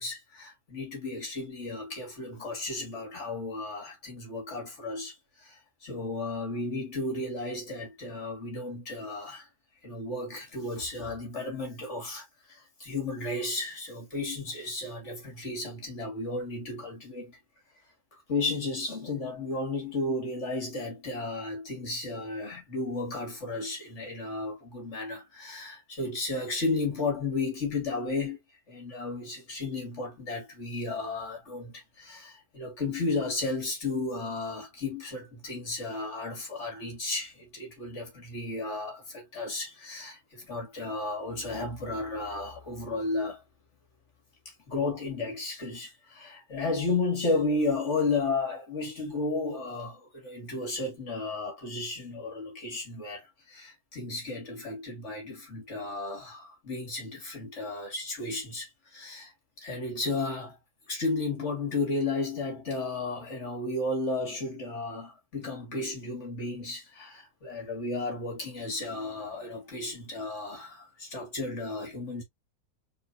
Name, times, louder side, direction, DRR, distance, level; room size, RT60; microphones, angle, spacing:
voice 1, 0.0-9.5 9.8-17.4 18.1-28.4 28.7-43.4 44.5-60.6 60.9-72.2, left 3 dB, 45° left, 2.6 m, -33 dB
4.4 x 4.3 x 2.7 m
omnidirectional pair, 1.7 m